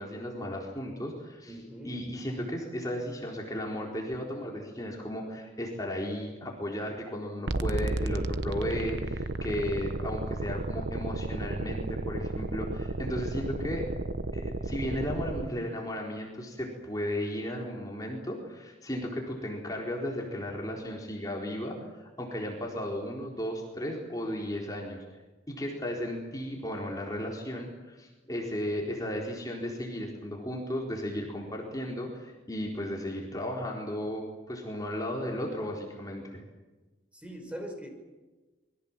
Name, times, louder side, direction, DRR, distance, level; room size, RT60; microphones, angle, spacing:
voice 1, 0.0-13.9 14.3-25.0 25.5-36.4, equal, 20° left, -1 dB, 4.2 m, -35 dB
voice 2, 1.5-2.0 37.1-37.9, equal, 5° right, 3 dB, 5.7 m, -41 dB
sound 1, 7.5-15.5, right 2 dB, 75° right, 1.0 m, -33 dB
28.0 x 23.0 x 7.5 m, 1.2 s
head